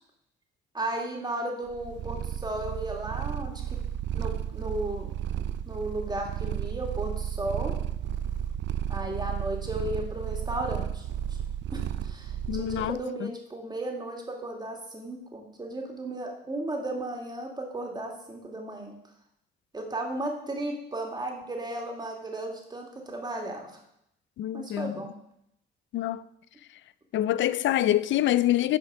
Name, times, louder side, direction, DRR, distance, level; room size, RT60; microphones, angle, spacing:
voice 1, 0.7-3.8 4.1-5.1 5.7-7.8 8.9-11.1 11.7-18.9 19.7-23.8 24.5-25.2, right 1 dB, 20° right, 2.3 m, -35 dB
Purr, 1.7-13.0, right 10 dB, 65° right, 0.5 m, -33 dB
voice 2, 12.5-13.3 24.4-25.0 25.9-26.2 27.1-28.8, left 13 dB, 70° left, 0.5 m, -26 dB
8.9 x 5.3 x 6.1 m
cardioid pair, 90°, 20 cm